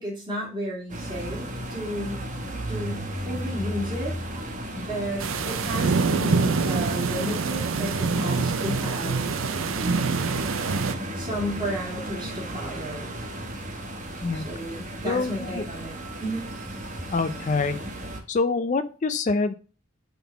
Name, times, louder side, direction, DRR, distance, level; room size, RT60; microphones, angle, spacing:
voice 1, 0.0-2.2 2.7-4.2 4.7-9.2 11.1-13.2 14.3-16.5, equal, 20° right, -5 dB, 2.4 m, -33 dB
sound 1, 0.9-18.2, right 1 dB, 35° right, 1.1 m, -35 dB
sound 2, 5.2-10.9, right 4 dB, 70° right, 0.5 m, -25 dB
voice 2, 15.0-15.6 17.1-17.8 18.3-19.5, left 4 dB, 35° left, 11 dB, 0.4 m, -25 dB
5.5 x 4.0 x 5.7 m, 0.35 s
head